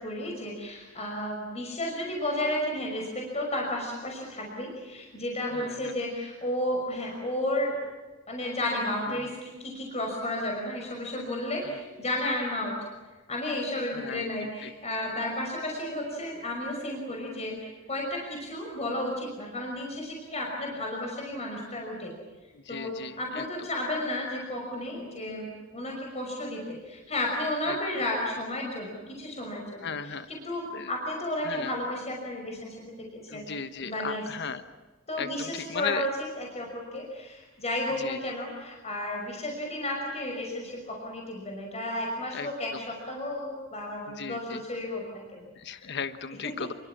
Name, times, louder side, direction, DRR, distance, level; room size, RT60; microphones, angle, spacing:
voice 1, 0.0-7.8 8.3-12.9 13.3-22.1 22.7-34.2 35.1-45.5 46.4-46.5, left 1 dB, 30° left, 0 dB, 5.8 m, -33 dB
voice 2, 5.5-6.0 9.1-9.3 11.6-11.8 13.9-14.7 22.5-23.7 27.7-27.8 29.8-30.3 30.7-30.9 31.4-31.7 33.3-34.6 35.2-36.1 38.0-38.3 42.3-42.8 44.1-44.6 45.6-46.7, left 6 dB, 60° left, 10 dB, 1.2 m, -37 dB
28.5 x 24.0 x 7.3 m, 1.2 s
head